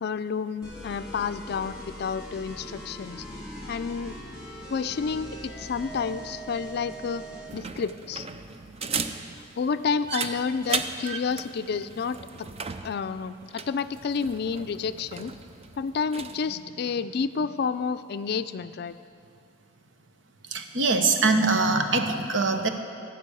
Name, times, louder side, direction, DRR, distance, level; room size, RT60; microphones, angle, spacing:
voice 1, 0.0-3.2 3.7-4.1 4.7-7.2 7.5-8.3 9.6-12.5 12.8-15.3 15.8-19.0, left 5 dB, 60° left, 13 dB, 0.4 m, -30 dB
sound 1, 0.6-7.5, equal, 5° right, 3.0 m, -41 dB
sound 2, 7.5-16.4, right 5 dB, 35° right, 0.5 m, -36 dB
voice 2, 20.5-22.7, right 3 dB, 85° right, 6 dB, 1.0 m, -23 dB
15.5 x 6.0 x 8.4 m, 2.4 s
head